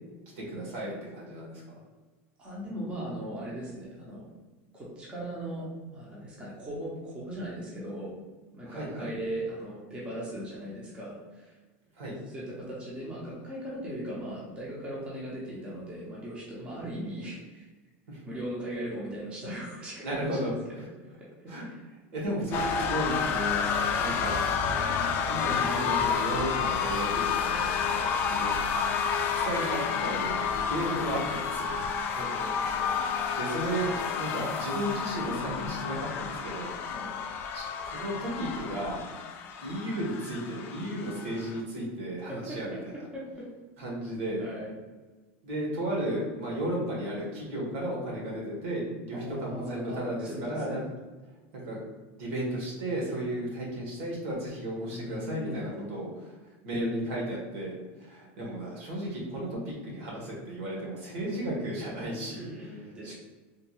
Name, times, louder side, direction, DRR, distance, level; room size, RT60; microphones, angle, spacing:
voice 1, 0.3-1.8 8.6-9.1 11.9-12.2 18.1-18.2 20.0-20.9 21.5-21.7 22.1-24.4 25.3-27.7 28.3-28.7 29.3-31.7 33.3-36.7 37.5-39.0 39.6-43.1 43.8-44.4 45.4-50.8 51.5-51.8 52.2-56.4 56.6-62.7 63.0-63.1, right 1 dB, 70° right, -4 dB, 1.5 m, -34 dB
voice 2, 2.4-4.2 4.7-5.7 5.9-8.1 8.5-11.6 12.3-17.7 18.3-20.5 21.6-21.8 27.9-28.2 32.1-32.9 36.9-37.1 42.3-42.8 43.1-43.5 44.4-44.7 49.1-50.8 54.9-55.9 62.3-63.1, right 1 dB, 15° right, -6 dB, 0.7 m, -39 dB
sound 1, 22.5-41.6, left 6 dB, 35° left, 0.3 m, -30 dB
3.5 x 2.5 x 3.0 m, 1.3 s
supercardioid pair, 165°, 7 cm